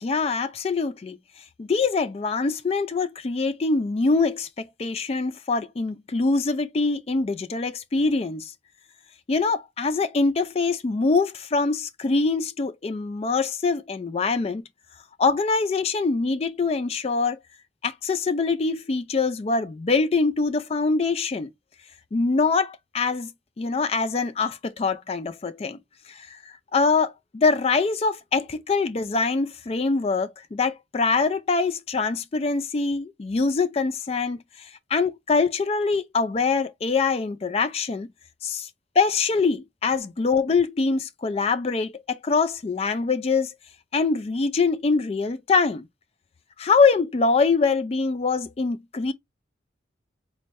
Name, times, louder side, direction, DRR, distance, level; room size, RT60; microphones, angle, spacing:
voice 1, 0.0-1.2 1.6-8.5 9.3-14.6 15.2-17.4 17.8-21.5 22.1-23.3 23.6-25.8 26.2-26.3 26.7-34.4 34.9-38.1 38.4-38.7 39.0-43.5 43.9-45.9 46.6-49.1, left 4 dB, 30° left, 0.3 m, -24 dB
4.2 x 2.1 x 3.3 m
head